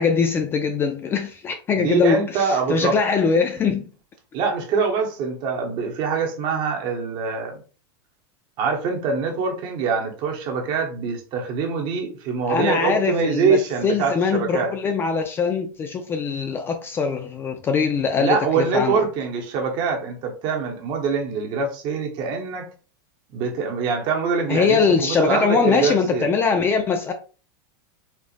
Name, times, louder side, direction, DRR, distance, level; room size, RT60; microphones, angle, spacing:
voice 1, 0.0-3.9 12.5-19.0 24.5-27.1, left 5 dB, 20° left, 0.3 m, -22 dB
voice 2, 1.8-3.0 4.3-7.6 8.6-14.7 18.2-22.7 23.3-26.3, right 5 dB, 40° right, 1.1 m, -24 dB
4.5 x 2.4 x 2.5 m
supercardioid pair, 150°, 12 cm